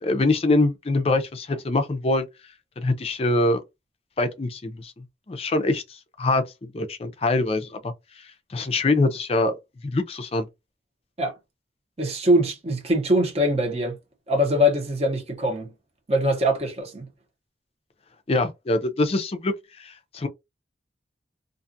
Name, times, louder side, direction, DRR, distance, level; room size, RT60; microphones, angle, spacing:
voice 1, 0.0-2.3 2.8-3.6 4.2-7.9 8.5-9.6 9.8-10.5 18.3-20.3, left 2 dB, 35° left, 0.4 m, -24 dB
voice 2, 12.0-14.0 14.3-15.7 16.1-17.1, equal, 35° right, 0.8 m, -22 dB
2.5 x 2.3 x 2.6 m
head